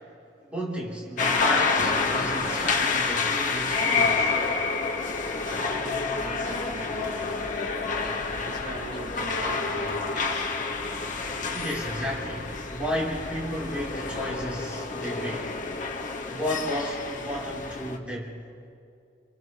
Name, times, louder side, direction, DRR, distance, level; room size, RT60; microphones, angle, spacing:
voice 1, 0.5-4.3 11.5-15.6 16.2-18.4, equal, 5° right, -5 dB, 3.8 m, -33 dB
sound 1, 1.2-18.0, left 4 dB, 45° left, 1.7 m, -28 dB
sound 2, 5.2-14.6, equal, 20° left, 2.7 m, -45 dB
voice 2, 5.4-7.4 8.0-10.5, right 1 dB, 45° right, -1 dB, 3.4 m, -42 dB
29.5 x 28.5 x 3.3 m, 2.4 s
head